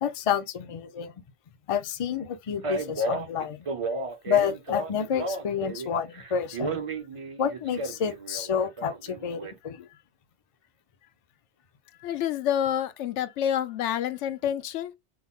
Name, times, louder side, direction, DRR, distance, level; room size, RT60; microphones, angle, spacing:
voice 1, 0.0-1.1 1.7-3.6 4.3-6.8 7.4-9.9, left 8 dB, 45° left, 0.5 m, -29 dB
Male speech man speaking, 2.6-5.9 6.1-9.5, right 2 dB, 35° right, 0.6 m, -32 dB
voice 2, 12.0-14.9, left 10 dB, 85° left, 0.9 m, -28 dB
6.0 x 2.0 x 3.5 m
omnidirectional pair, 1.2 m